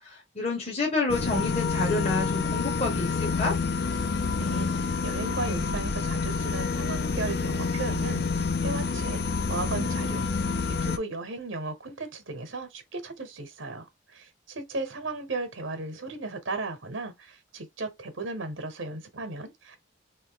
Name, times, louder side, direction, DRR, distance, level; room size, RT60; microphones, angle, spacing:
voice 1, 0.0-3.6, left 3 dB, 30° left, 1.0 m, -29 dB
sound 1, 1.1-11.0, left 4 dB, 55° left, 0.5 m, -28 dB
voice 2, 4.4-8.2 8.6-9.2 9.5-10.3 10.7-13.9 14.1-19.8, right 3 dB, 70° right, 1.0 m, -35 dB
3.2 x 2.7 x 3.7 m
head